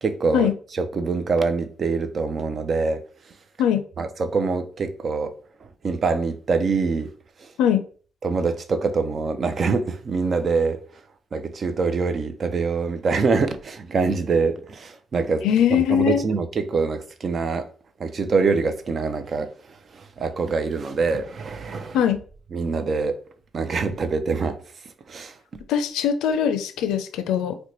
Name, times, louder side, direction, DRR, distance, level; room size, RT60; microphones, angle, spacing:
voice 1, 0.0-3.0 4.0-5.3 5.8-7.1 8.2-10.8 11.3-15.4 15.7-17.7 18.0-19.5 19.9-22.0 22.5-23.2 23.5-24.6 25.1-25.3, right 4 dB, 55° right, 0.5 m, -24 dB
voice 2, 15.4-16.2 21.9-22.2 25.7-27.6, left 9 dB, 90° left, 0.4 m, -21 dB
2.9 x 2.2 x 3.9 m
cardioid pair, 70°, 0 cm